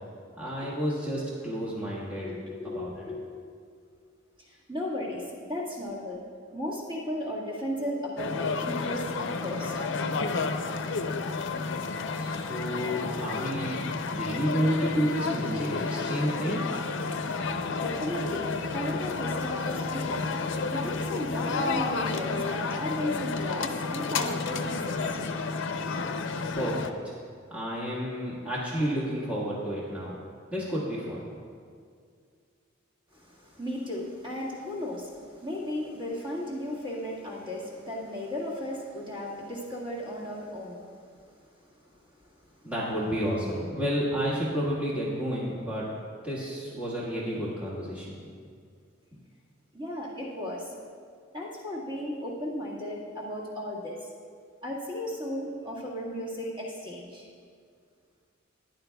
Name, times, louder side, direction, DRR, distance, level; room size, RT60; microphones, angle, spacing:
voice 1, 0.4-2.4 2.6-2.9 12.2-13.8 14.1-16.6 26.5-27.1 27.5-30.2 30.5-31.2 42.6-45.9 46.2-48.1, equal, 5° right, -8 dB, 1.6 m, -30 dB
voice 2, 2.2-3.4 4.4-6.2 6.5-9.8 17.8-20.3 20.7-25.2 33.1-42.6 49.7-50.7 51.3-54.1 54.6-57.3, left 1 dB, 25° right, -5 dB, 1.7 m, -35 dB
sound 1, 8.2-26.9, left 4 dB, 65° left, 0.5 m, -31 dB
Brass instrument, 17.2-22.7, left 1 dB, 70° right, 1.6 m, -43 dB
14.5 x 11.0 x 2.3 m, 2.2 s
head